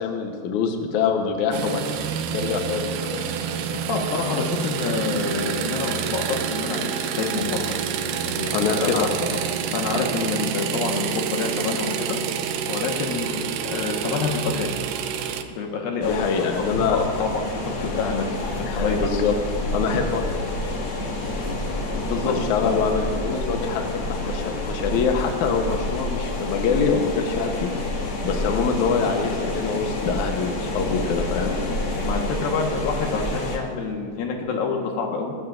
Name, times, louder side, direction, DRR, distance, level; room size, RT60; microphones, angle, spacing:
voice 1, 0.0-2.0 2.3-3.2 8.5-9.4 16.0-17.0 18.7-19.4 19.7-20.8 22.2-23.8 24.1-27.7 28.2-31.6, left 6 dB, 65° left, 3 dB, 2.3 m, -25 dB
sound 1, 1.5-15.4, right 7 dB, 80° right, 2.6 m, -28 dB
voice 2, 3.9-7.7 8.3-9.1 9.7-12.2 12.7-14.8 15.6-16.2 16.9-17.4 17.8-18.2 18.6-19.0 22.1-22.4 22.6-22.8 32.0-35.4, left 4 dB, 85° left, 1 dB, 3.3 m, -27 dB
sound 2, 16.0-33.6, left 1 dB, 40° left, 2.4 m, -28 dB
21.5 x 15.0 x 2.6 m, 2.4 s
omnidirectional pair, 4.0 m